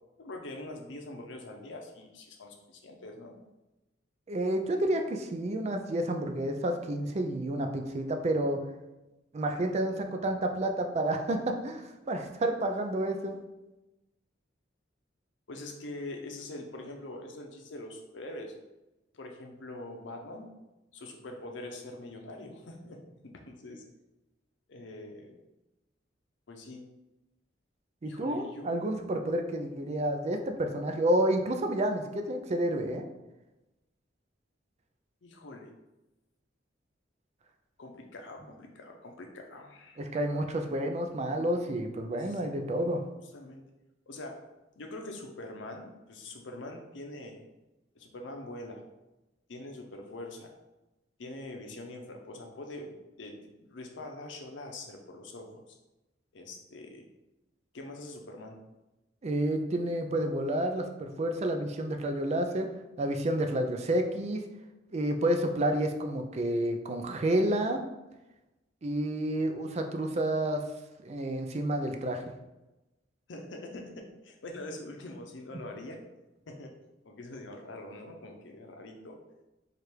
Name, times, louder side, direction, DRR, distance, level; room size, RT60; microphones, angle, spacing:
voice 1, 0.2-3.4 15.5-18.5 19.1-20.5 20.9-23.0 23.2-23.8 24.7-25.3 26.5-26.8 28.0-28.8 35.2-35.7 37.8-40.0 42.2-42.4 43.3-43.6 44.1-44.4 44.8-47.4 47.9-48.8 49.5-50.5 51.2-55.8 56.3-57.1 57.7-58.6 73.3-76.0 76.5-76.7 77.0-79.2, left 2 dB, 85° left, 3 dB, 0.6 m, -44 dB
voice 2, 4.3-8.6 9.3-13.4 28.0-33.0 40.0-43.0 59.2-62.7 63.0-64.4 64.9-67.8 68.8-70.6 71.0-72.2, right 1 dB, 35° right, 5 dB, 0.4 m, -30 dB
3.3 x 2.5 x 4.4 m, 1.0 s
head